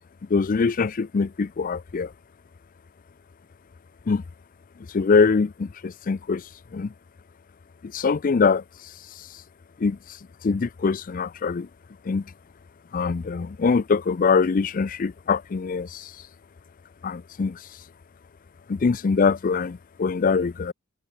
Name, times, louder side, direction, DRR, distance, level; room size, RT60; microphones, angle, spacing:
voice 1, 0.3-2.1 4.1-4.2 4.9-6.4 6.7-6.9 7.8-8.6 9.2-9.3 9.8-10.0 10.4-11.7 12.1-12.2 12.9-16.1 17.0-17.6 18.7-20.7, left 5 dB, 40° left, 0.4 m, -23 dB
head